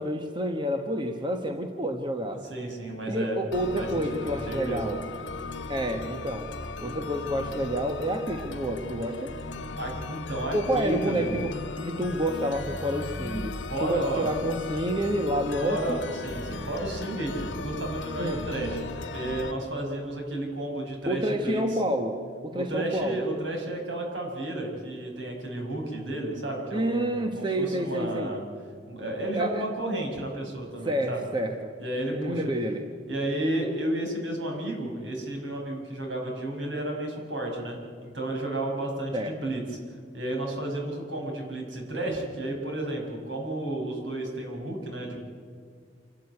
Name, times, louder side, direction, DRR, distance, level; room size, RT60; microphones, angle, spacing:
voice 1, 0.0-2.4 3.1-5.0 5.7-6.5 6.8-9.3 10.5-16.0 18.2-18.4 21.1-23.3 26.7-28.3 29.3-29.6 30.8-31.7 32.1-32.9 39.1-39.5, equal, 25° right, 4 dB, 1.2 m, -29 dB
voice 2, 2.5-3.4 3.8-3.9 4.2-4.8 9.8-11.3 13.7-14.3 15.6-18.8 19.1-21.8 22.5-28.4 28.9-31.2 31.8-32.4 33.1-39.8 40.1-45.2, right 1 dB, 75° right, 1 dB, 6.2 m, -32 dB
sound 1, 3.5-19.5, left 2 dB, 80° left, 1.5 m, -37 dB
27.0 x 12.5 x 9.7 m, 2.1 s
head